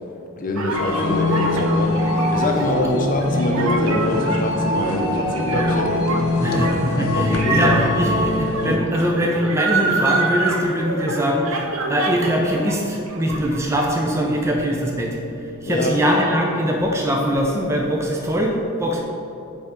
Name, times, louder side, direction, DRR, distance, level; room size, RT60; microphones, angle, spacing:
voice 1, 0.4-6.0 6.5-6.7 7.1-7.8 8.2-8.3 15.6-16.0, left 1 dB, 35° left, 2 dB, 0.6 m, -25 dB
sound 1, 0.6-12.8 13.0-13.9, right 3 dB, 70° right, 0.7 m, -27 dB
sound 2, 0.7-8.8, left 2 dB, 75° left, 0.7 m, -22 dB
voice 2, 6.4-15.2 15.6-19.0, equal, 10° right, 0 dB, 0.4 m, -22 dB
8.6 x 3.5 x 4.3 m, 2.9 s
head